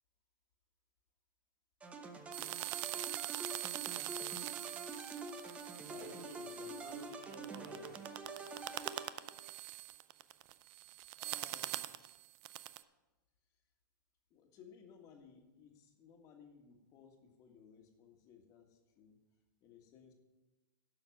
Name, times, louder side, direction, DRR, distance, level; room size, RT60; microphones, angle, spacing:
sound 1, 1.8-9.5, right 2 dB, 10° right, 0.9 m, -47 dB
sound 2, 2.3-12.8, right 17 dB, 35° right, 0.4 m, -43 dB
voice 1, 5.8-8.2, right 3 dB, 75° right, 0 dB, 4.0 m, -53 dB
voice 2, 11.2-12.0 14.3-19.2 19.6-20.1, left 6 dB, 30° left, 3 dB, 1.8 m, -60 dB
12.0 x 6.4 x 5.8 m, 1.1 s
hypercardioid pair, 140°, 11 cm